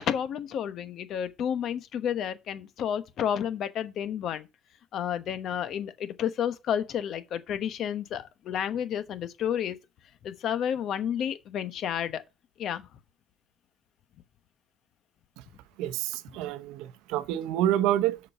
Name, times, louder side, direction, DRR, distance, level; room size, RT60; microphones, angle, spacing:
voice 1, 0.0-4.4 4.9-9.8 10.2-12.2 12.6-12.8, left 9 dB, 55° left, 1.1 m, -31 dB
voice 2, 15.8-18.2, right 12 dB, 90° right, 0.7 m, -28 dB
6.8 x 5.3 x 6.8 m
cardioid pair, 135°, 0 cm